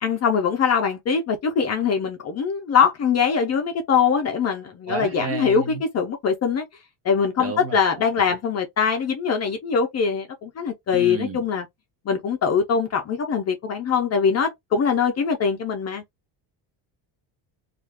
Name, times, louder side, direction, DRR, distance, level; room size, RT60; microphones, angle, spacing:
voice 1, 0.0-6.7 7.0-11.6 12.1-16.0, left 6 dB, 35° left, 0.5 m, -22 dB
voice 2, 4.9-5.8 7.4-7.8 10.9-11.4, right 4 dB, 30° right, 0.7 m, -31 dB
2.4 x 2.3 x 3.4 m
cardioid pair, 175°, 48 cm